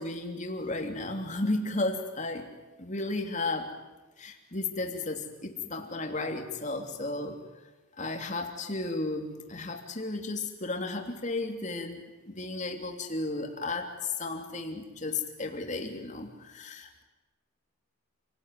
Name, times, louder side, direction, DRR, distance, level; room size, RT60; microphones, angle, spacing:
voice 1, 0.0-2.5 2.8-3.7 4.2-7.4 8.0-17.0, left 2 dB, 35° left, 4 dB, 3.1 m, -34 dB
28.5 x 18.5 x 9.6 m, 1.1 s
head